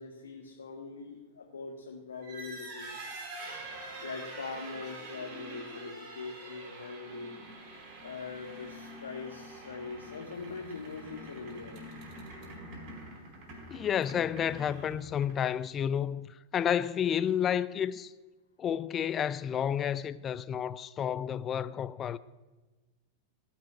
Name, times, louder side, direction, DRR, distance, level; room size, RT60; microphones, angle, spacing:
voice 1, 0.0-3.1 4.0-7.3 8.0-11.8, left 4 dB, 70° left, 1.7 m, -42 dB
sound 1, 2.1-15.6, right 1 dB, 40° right, 4.9 m, -45 dB
voice 2, 13.7-18.1 18.6-22.2, left 9 dB, 25° left, 0.5 m, -31 dB
18.0 x 6.0 x 9.7 m
figure-of-eight pair, 90°, 0 cm